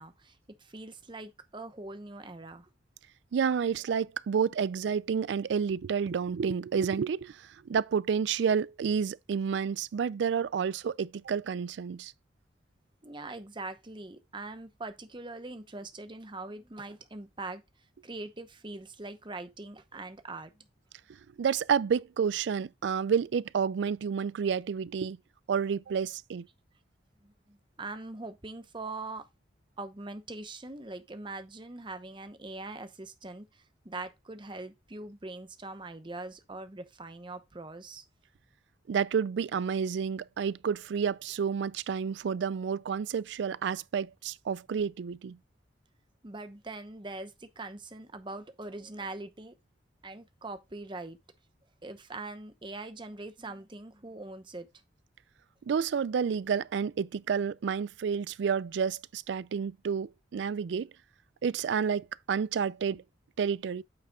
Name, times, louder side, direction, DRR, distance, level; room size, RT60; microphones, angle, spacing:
voice 1, 0.0-2.7 13.0-17.6 18.0-20.6 27.2-29.3 29.8-38.0 46.2-49.5 50.0-51.2 51.8-54.7, right 2 dB, 25° right, 0.8 m, -42 dB
voice 2, 3.3-12.1 21.4-25.2 25.5-26.5 38.9-45.4 55.7-60.9 61.4-63.0 63.4-63.8, right 6 dB, 65° right, 0.3 m, -30 dB
8.8 x 6.5 x 2.3 m
head